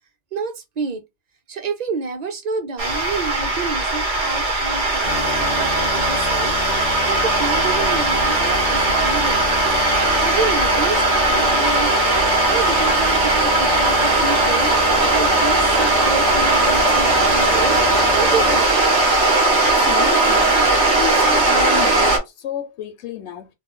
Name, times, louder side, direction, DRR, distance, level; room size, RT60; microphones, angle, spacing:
voice 1, 0.3-1.0 1.5-9.5 10.2-11.9 12.5-14.7 15.1-17.8 18.2-18.7, right 4 dB, 45° right, 0.7 m, -29 dB
sound 1, 2.8-22.2, right 2 dB, 85° right, 1.5 m, -18 dB
sound 2, 5.0-18.6, left 7 dB, 55° left, 0.5 m, -29 dB
voice 2, 19.6-23.5, left 8 dB, 80° left, 0.9 m, -31 dB
3.1 x 2.1 x 3.7 m
omnidirectional pair, 1.2 m